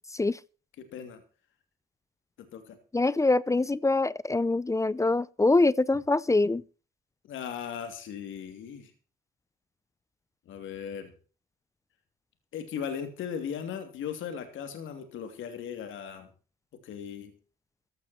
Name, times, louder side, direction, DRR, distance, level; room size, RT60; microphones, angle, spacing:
voice 1, 0.8-1.2 2.4-2.8 7.3-8.9 10.5-11.1 12.5-16.3 16.8-17.3, left 8 dB, 80° left, 2.9 m, -37 dB
voice 2, 2.9-6.6, left 2 dB, 15° left, 0.5 m, -24 dB
15.5 x 12.0 x 4.4 m
cardioid pair, 90°, 20 cm